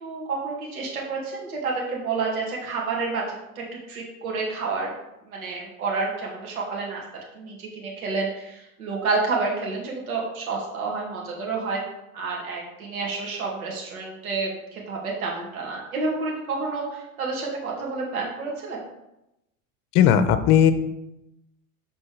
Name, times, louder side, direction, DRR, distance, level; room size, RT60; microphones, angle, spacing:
voice 1, 0.0-4.9 5.3-7.0 7.3-11.8 12.1-18.9, right 4 dB, 80° right, -2 dB, 2.2 m, -29 dB
voice 2, 19.9-20.7, left 9 dB, 45° left, 11 dB, 0.8 m, -16 dB
6.8 x 4.1 x 5.2 m, 0.89 s
hypercardioid pair, 105°, 42 cm